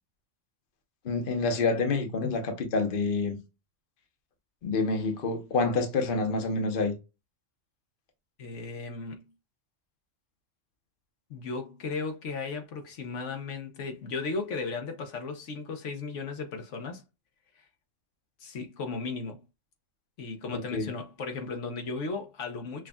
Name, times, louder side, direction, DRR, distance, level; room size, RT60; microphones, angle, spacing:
voice 1, 1.0-3.4 4.6-6.9 20.5-20.9, left 3 dB, 50° left, 0.9 m, -28 dB
voice 2, 8.4-9.2 11.3-17.0 18.4-19.4 20.2-22.9, left 4 dB, 75° left, 1.1 m, -35 dB
6.0 x 2.3 x 2.2 m
omnidirectional pair, 1.3 m